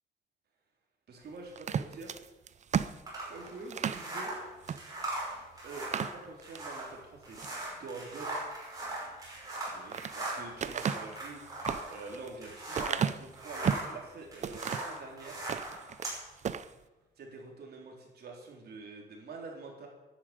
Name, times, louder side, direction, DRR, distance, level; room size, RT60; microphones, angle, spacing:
voice 1, 1.1-2.2 3.3-4.3 5.6-7.4 7.8-8.3 9.7-15.4 17.2-19.9, right 3 dB, 60° right, 0 dB, 4.1 m, -46 dB
sound 1, 1.6-4.1 4.6-4.8 5.2-5.3 5.7-6.7 7.2-7.6 9.4-10.2 10.6-13.9 14.4-15.0 15.4-16.1 16.4-16.7, right 7 dB, 40° right, 0.6 m, -34 dB
sound 2, 3.1-13.0 13.3-16.2, right 2 dB, 20° right, 5.8 m, -39 dB
11.5 x 11.5 x 9.0 m, 1.1 s
wide cardioid pair, 170°, 19 cm